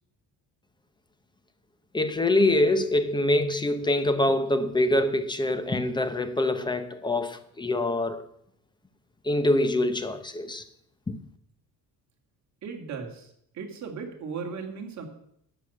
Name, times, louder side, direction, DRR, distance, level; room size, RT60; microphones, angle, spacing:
voice 1, 1.9-8.3 9.2-10.7 11.1-11.2, left 1 dB, 10° left, 0.7 m, -25 dB
voice 2, 12.6-15.1, right 5 dB, 45° right, 2.3 m, -37 dB
12.0 x 5.7 x 8.4 m
cardioid pair, 155°, 38 cm